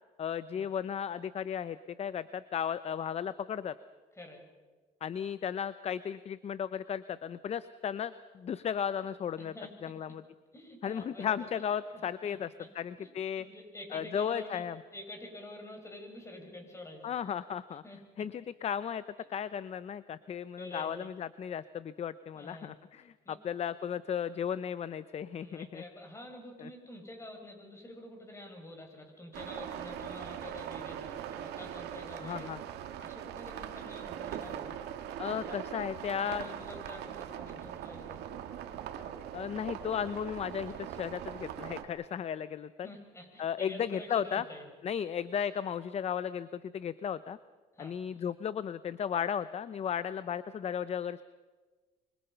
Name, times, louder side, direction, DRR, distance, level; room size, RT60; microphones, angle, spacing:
voice 1, 0.2-3.7 5.0-9.5 9.8-10.2 10.8-12.5 12.7-13.5 13.9-14.8 17.0-17.8 18.2-19.0 19.3-25.8 26.6-26.7 32.2-32.6 35.2-36.5 39.3-42.9 43.4-44.4 44.8-47.4 47.8-51.2, left 8 dB, 40° left, 15 dB, 0.7 m, -35 dB
voice 2, 4.1-4.4 9.4-9.9 10.5-11.6 12.2-12.7 13.0-13.1 13.4-14.6 14.9-17.1 17.8-18.3 20.6-21.1 22.3-22.7 23.2-23.4 25.4-32.6 33.0-34.8 35.3-38.3 42.8-44.6 47.7-48.0, left 1 dB, 15° left, 3 dB, 6.4 m, -48 dB
sound 1, 29.3-41.9, right 10 dB, 80° right, 1.9 m, -41 dB
26.0 x 25.0 x 5.7 m, 1.3 s
cardioid pair, 110°, 17 cm